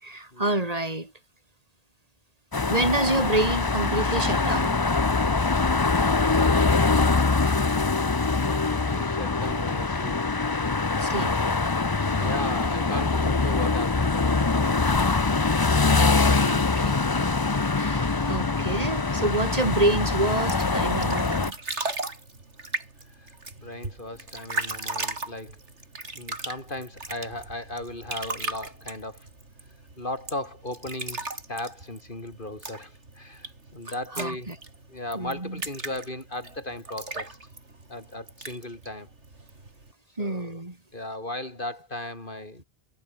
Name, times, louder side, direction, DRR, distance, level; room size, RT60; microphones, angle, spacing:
voice 1, 0.0-1.1 2.7-4.8 11.0-11.4 12.2-12.3 15.9-21.6 33.8-34.6 35.1-35.6 40.2-40.8, right 2 dB, 35° right, 3.5 m, -28 dB
sound 1, 2.5-21.5, left 3 dB, 25° left, 0.7 m, -23 dB
voice 2, 8.4-10.2 12.1-15.1 23.2-23.3 23.6-25.6 26.1-29.3 30.0-31.2 31.5-34.5 34.9-37.4 37.9-39.1 40.2-40.6 40.9-42.6, left 1 dB, 50° left, 5.0 m, -37 dB
sound 2, 20.3-39.9, right 3 dB, 90° right, 4.0 m, -37 dB
omnidirectional pair, 1.2 m